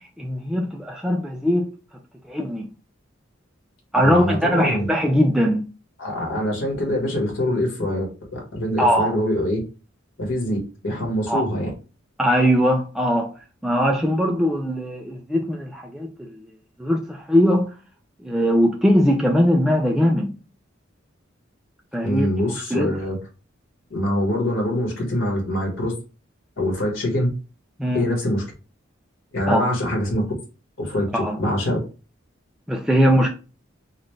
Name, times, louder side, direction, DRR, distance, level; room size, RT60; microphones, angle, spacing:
voice 1, 0.2-1.7 2.3-2.7 3.9-5.7 8.8-9.2 11.3-11.4 12.2-13.3 13.6-16.4 16.8-17.7 18.2-20.3 21.9-22.3 22.7-23.0 27.8-28.1 29.5-29.7 31.1-31.4 32.7-33.3, equal, 5° right, 0.5 m, -20 dB
voice 2, 4.0-4.9 6.0-9.6 10.2-10.6 10.8-11.7 22.0-23.2 23.9-25.9 26.6-27.3 27.9-28.4 29.3-30.3 30.8-31.8, left 1 dB, 70° left, 1.6 m, -24 dB
4.1 x 2.5 x 3.2 m
head